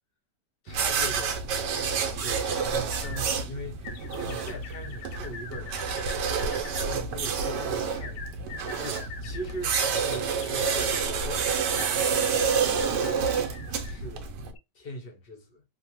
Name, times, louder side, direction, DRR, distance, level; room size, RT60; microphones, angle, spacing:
voice 1, 0.6-1.5 2.1-5.8 6.8-8.2 8.8-11.5 11.7-12.4 12.8-13.3 13.8-14.3 14.7-15.6, equal, 50° left, 0.7 m, -40 dB
sound 1, 0.7-14.5, right 6 dB, 80° right, 1.2 m, -29 dB
sound 2, 2.2-3.2 3.8-6.9 8.0-11.1 11.8-14.0 14.5-14.6, left 5 dB, 80° left, 1.2 m, -44 dB
3.2 x 2.1 x 2.9 m
omnidirectional pair, 1.9 m